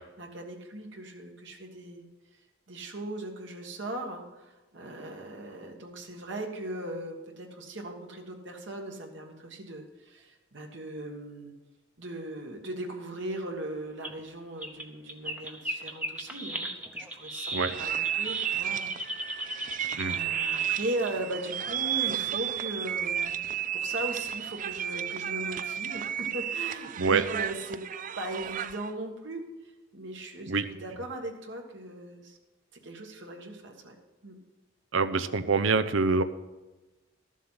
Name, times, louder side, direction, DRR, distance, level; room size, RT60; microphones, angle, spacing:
voice 1, 0.2-2.0 2.7-11.5 12.0-16.7 16.9-19.7 20.0-23.3 23.7-27.8 28.1-29.4 29.9-32.4 32.8-33.9 34.2-34.3, right 1 dB, 65° right, 2 dB, 1.6 m, -38 dB
sound 1, 14.0-14.2 14.6-21.2 22.5-22.6 23.2-23.3 23.9-24.0, right 1 dB, 5° right, 0.8 m, -37 dB
sound 2, 17.7-28.9, right 10 dB, 40° right, 0.3 m, -32 dB
voice 2, 34.9-36.2, right 4 dB, 80° right, 12 dB, 0.7 m, -25 dB
13.0 x 7.3 x 5.7 m, 1.1 s
head